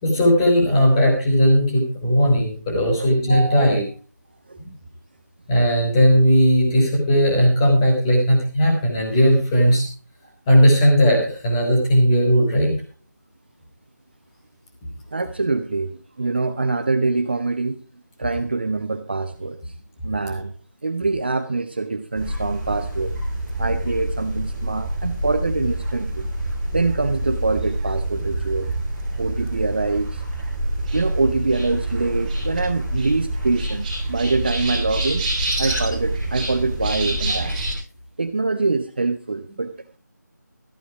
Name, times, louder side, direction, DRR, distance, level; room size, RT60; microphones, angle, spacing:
voice 1, 0.0-3.9 4.6-4.7 5.5-9.9 10.5-12.7 37.3-37.4, equal, 10° left, -1 dB, 3.8 m, -17 dB
voice 2, 15.1-17.8 18.2-19.7 20.0-20.5 20.8-23.1 23.6-26.3 26.7-28.7 29.2-30.2 30.9-35.2 35.6-37.6 38.2-39.7, right 3 dB, 35° right, 11 dB, 0.7 m, -24 dB
sound 1, 22.2-37.8, right 1 dB, 15° right, 7.1 m, -26 dB
14.5 x 11.0 x 4.7 m, 0.36 s
figure-of-eight pair, 165°, 10 cm